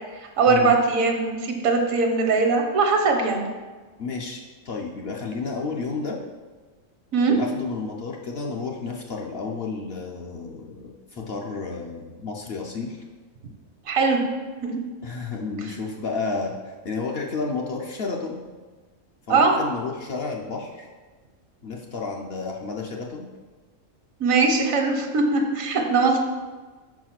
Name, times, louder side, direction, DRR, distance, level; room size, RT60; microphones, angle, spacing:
voice 1, 0.2-3.5 7.1-7.4 13.9-14.2 14.6-14.7 19.3-19.5 24.2-26.2, right 4 dB, 75° right, 3 dB, 1.3 m, -21 dB
voice 2, 4.0-6.2 7.3-13.0 15.0-18.4 19.3-20.9 21.6-23.3, left 4 dB, 55° left, 0 dB, 0.8 m, -31 dB
4.9 x 4.8 x 5.9 m, 1.3 s
omnidirectional pair, 1.4 m